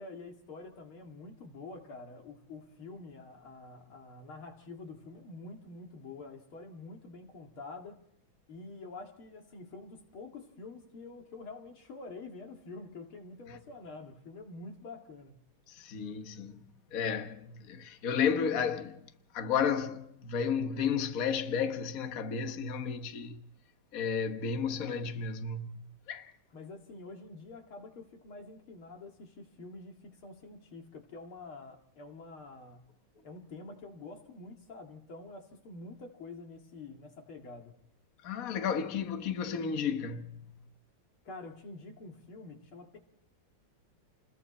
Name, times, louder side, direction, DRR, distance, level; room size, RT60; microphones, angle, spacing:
voice 1, 0.0-8.0 8.5-15.4 26.5-32.8 33.2-37.8 41.2-43.0, left 3 dB, 85° left, 3.1 m, -47 dB
voice 2, 15.7-16.6 16.9-19.0 19.3-23.4 23.9-26.3 38.2-40.6, left 6 dB, 45° left, 1.6 m, -33 dB
29.5 x 21.5 x 4.3 m
omnidirectional pair, 2.3 m